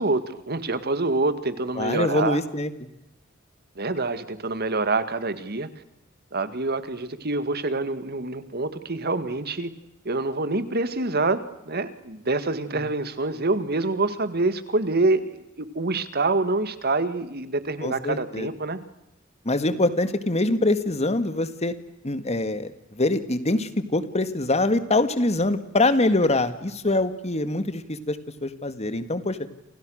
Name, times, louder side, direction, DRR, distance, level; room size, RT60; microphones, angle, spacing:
voice 1, 0.0-2.4 3.8-5.7 6.3-9.7 10.1-18.8, right 3 dB, 50° right, 12 dB, 1.9 m, -26 dB
voice 2, 1.8-2.9 17.8-18.5 19.5-21.7 22.0-29.4, left 2 dB, 35° left, 11 dB, 1.9 m, -24 dB
29.0 x 29.0 x 6.5 m, 0.85 s
head